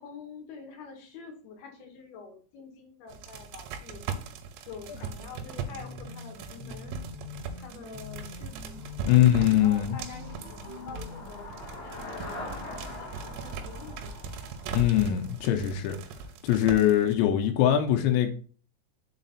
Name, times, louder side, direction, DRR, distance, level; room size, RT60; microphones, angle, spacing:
voice 1, 0.0-4.0 4.7-7.0 7.5-8.8 9.1-11.5 11.8-14.1, left 5 dB, 70° left, 3 dB, 2.7 m, -46 dB
sound 1, 3.1-17.1, right 5 dB, 80° right, 2.7 m, -40 dB
sound 2, 5.7-11.4, left 4 dB, 20° left, 2.5 m, -44 dB
Traffic noise roadway noise / Bicycle, 7.3-16.4, left 1 dB, 45° left, 1.9 m, -44 dB
voice 2, 9.1-10.0 14.7-16.0 16.4-18.3, left 11 dB, 90° left, 4 dB, 2.9 m, -22 dB
6.6 x 4.0 x 4.1 m, 0.43 s
omnidirectional pair, 5.2 m